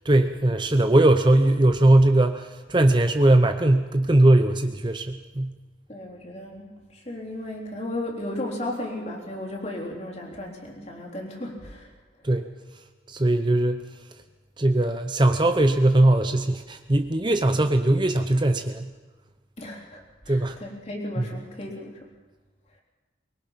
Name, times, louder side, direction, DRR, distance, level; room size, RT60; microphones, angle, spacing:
voice 1, 0.0-5.6 12.2-12.5 13.1-13.8 14.6-18.9 20.3-20.6 21.2-21.3, right 1 dB, 25° right, 7 dB, 0.7 m, -20 dB
voice 2, 5.9-11.9 19.6-22.0, left 1 dB, 35° left, 0 dB, 3.6 m, -35 dB
23.5 x 22.0 x 5.8 m, 1.3 s
head